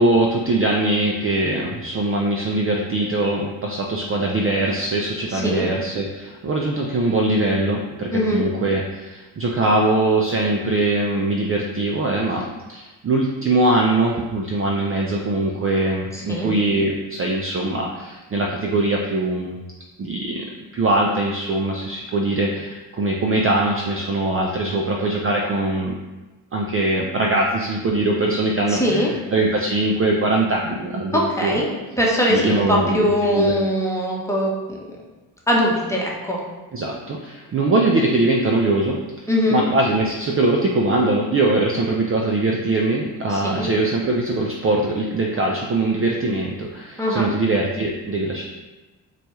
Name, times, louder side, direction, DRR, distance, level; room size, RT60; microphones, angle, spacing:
voice 1, 0.0-19.6 20.0-25.9 26.5-31.5 32.3-33.6 36.7-39.0 39.5-48.4, right 2 dB, 30° right, 0 dB, 0.5 m, -22 dB
voice 2, 5.3-5.7 8.1-8.4 16.1-16.5 28.7-29.1 31.1-31.7 32.0-34.8 35.5-36.4 39.3-39.7 43.3-43.7 47.0-47.3, equal, 5° left, -3 dB, 1.0 m, -21 dB
4.1 x 2.3 x 3.1 m, 1.2 s
hypercardioid pair, 50°, 47 cm